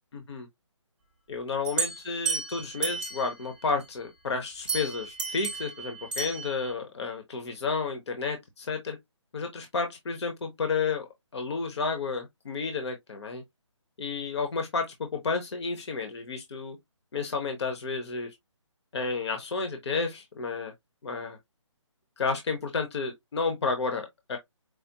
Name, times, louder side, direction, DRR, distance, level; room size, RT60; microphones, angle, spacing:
voice 1, 0.1-0.5 1.3-9.0 9.3-13.4 14.0-16.8 17.1-18.3 18.9-20.7 21.0-21.4 22.2-24.4, left 4 dB, 60° left, 1.0 m, -31 dB
sound 1, 1.6-3.5 4.7-6.7, right 5 dB, 5° right, 0.6 m, -33 dB
4.9 x 2.0 x 2.8 m
hypercardioid pair, 160°, 16 cm